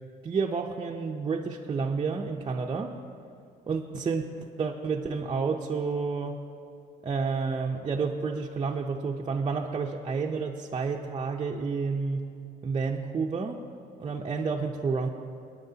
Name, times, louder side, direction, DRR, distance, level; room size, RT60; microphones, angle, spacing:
voice 1, 0.2-2.9 3.7-6.4 7.0-12.3 12.6-13.6 14.0-15.1, right 5 dB, 30° right, 0 dB, 0.5 m, -30 dB
20.0 x 9.7 x 2.8 m, 2.4 s
cardioid pair, 110°, 17 cm